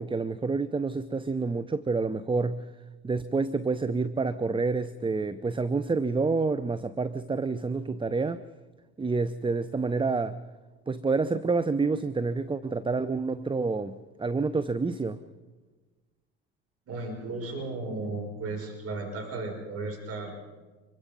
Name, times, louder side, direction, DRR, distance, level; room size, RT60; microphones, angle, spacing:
voice 1, 0.0-2.7 3.0-8.4 9.0-10.4 10.9-15.2, right 4 dB, 15° right, 0.7 m, -28 dB
voice 2, 16.9-20.3, right 2 dB, 45° right, 6.1 m, -35 dB
25.0 x 23.0 x 5.4 m
hypercardioid pair, 70°, 33 cm